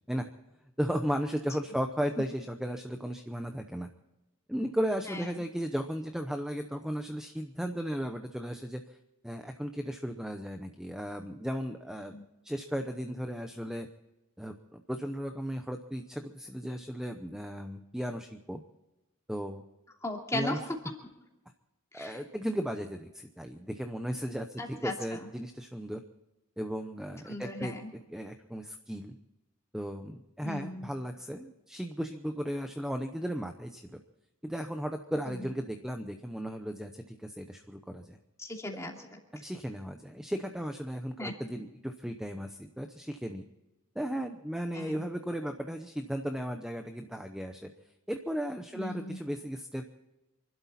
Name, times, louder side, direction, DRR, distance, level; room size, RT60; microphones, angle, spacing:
voice 1, 0.8-3.9 4.5-8.8 9.2-12.2 12.4-13.9 14.4-18.6 19.3-19.6 20.3-20.6 21.9-26.0 26.6-27.7 28.1-29.2 29.7-34.0 34.4-38.2 39.3-43.4 44.0-47.7 48.1-49.8, equal, 5° right, 6 dB, 0.8 m, -35 dB
voice 2, 20.0-21.0 21.9-22.2 24.6-25.3 27.3-27.9 30.4-30.9 38.4-39.0 41.2-41.3 44.7-45.1 48.7-49.2, left 1 dB, 15° left, 0 dB, 2.7 m, -37 dB
27.0 x 12.5 x 4.2 m, 0.99 s
head